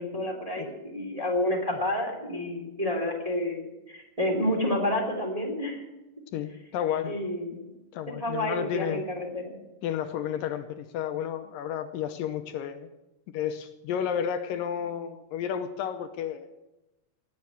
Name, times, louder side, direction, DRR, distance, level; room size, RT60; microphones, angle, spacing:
voice 1, 0.0-5.8 7.0-7.7 8.2-9.6, left 1 dB, 10° right, 0 dB, 2.1 m, -29 dB
voice 2, 6.3-7.2 7.9-9.1 9.8-12.9 13.3-16.5, left 9 dB, 75° left, 8 dB, 2.3 m, -32 dB
18.5 x 7.5 x 8.5 m, 0.98 s
omnidirectional pair, 4.2 m